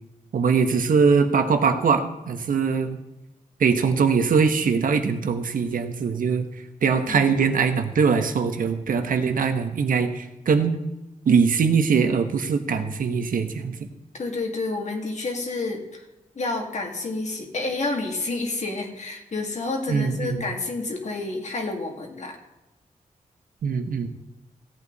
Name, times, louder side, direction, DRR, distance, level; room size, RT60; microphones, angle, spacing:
voice 1, 0.3-3.0 3.6-6.5 6.8-10.7 11.2-13.9 19.9-20.5 23.6-24.1, right 5 dB, 85° right, 7 dB, 1.2 m, -22 dB
voice 2, 14.1-16.0 16.3-22.4, left 3 dB, 55° left, 1 dB, 2.7 m, -29 dB
16.5 x 8.4 x 4.1 m, 0.98 s
wide cardioid pair, 95°, 14 cm